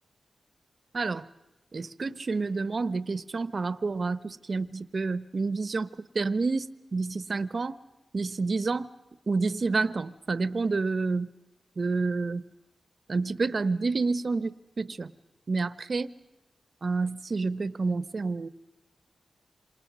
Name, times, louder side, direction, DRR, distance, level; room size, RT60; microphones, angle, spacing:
voice 1, 0.9-1.3 1.7-7.8 8.1-8.9 9.3-11.3 11.8-12.5 13.1-15.1 15.5-16.1 16.8-18.5, right 3 dB, 55° right, 16 dB, 1.0 m, -29 dB
27.5 x 27.5 x 6.2 m, 1.0 s
cardioid pair, 60°, 0 cm